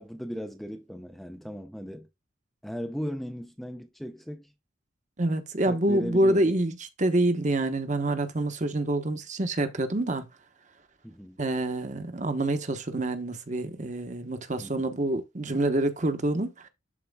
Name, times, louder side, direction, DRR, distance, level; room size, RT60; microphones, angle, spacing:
voice 1, 0.0-2.1 2.6-4.5 5.7-6.6 11.0-11.4 14.6-14.9, equal, ahead, 0.5 m, -37 dB
voice 2, 5.2-10.2 11.4-16.7, right 1 dB, 35° right, 0.9 m, -27 dB
12.5 x 4.3 x 2.2 m
head